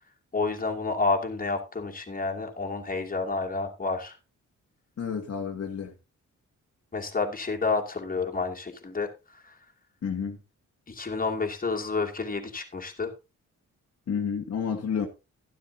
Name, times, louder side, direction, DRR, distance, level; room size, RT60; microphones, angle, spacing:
voice 1, 0.3-4.2 6.9-9.5 10.9-13.1, left 4 dB, 25° left, 2.5 m, -30 dB
voice 2, 5.0-5.9 10.0-10.4 14.1-15.1, left 6 dB, 50° left, 1.6 m, -30 dB
12.0 x 12.0 x 2.8 m
cardioid pair, 105°, 31 cm